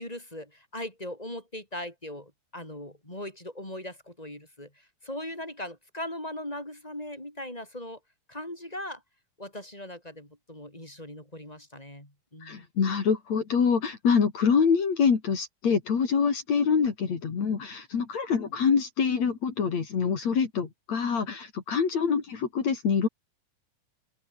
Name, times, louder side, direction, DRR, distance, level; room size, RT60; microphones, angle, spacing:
voice 1, 0.0-8.0 8.3-9.0 9.4-12.7, left 1 dB, 10° left, 6.3 m, -39 dB
voice 2, 12.4-23.1, left 6 dB, 55° left, 4.0 m, -25 dB
open air
omnidirectional pair, 3.9 m